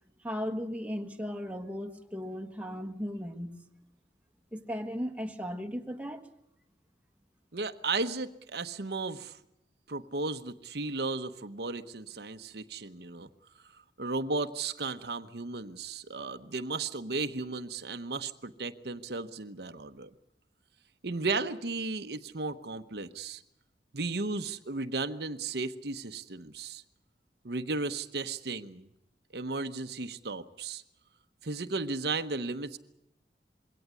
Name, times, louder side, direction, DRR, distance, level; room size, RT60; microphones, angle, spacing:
voice 1, 0.2-3.6 4.5-6.3, equal, 10° right, 1.4 m, -36 dB
voice 2, 7.5-9.4 9.9-13.3 13.7-20.1 21.0-23.4 23.9-26.8 27.4-28.9 29.3-30.8 31.4-32.8, right 3 dB, 65° right, 1.0 m, -35 dB
22.5 x 17.5 x 9.6 m
head